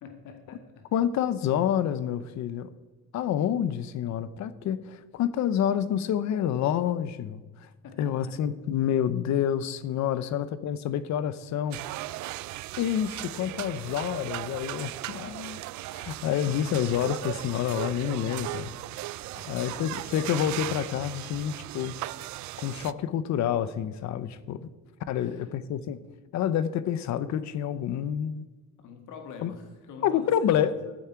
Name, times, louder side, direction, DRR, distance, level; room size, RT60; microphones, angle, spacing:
voice 1, 0.0-0.9 7.8-8.0 8.2-8.3 10.1-10.2 19.3-20.1 21.2-21.5 25.1-25.5 28.8-30.9, left 5 dB, 80° left, 1.9 m, -46 dB
voice 2, 0.9-2.7 3.1-7.7 8.0-11.8 12.8-15.6 15.9-18.7 19.5-22.0 22.6-24.7 25.1-26.0 26.3-28.5 29.4-29.5 30.0-30.7, left 9 dB, 65° left, 0.8 m, -28 dB
sound 1, 11.7-22.9, right 17 dB, 70° right, 0.4 m, -37 dB
14.5 x 8.8 x 4.7 m
cardioid pair, 155°, 30 cm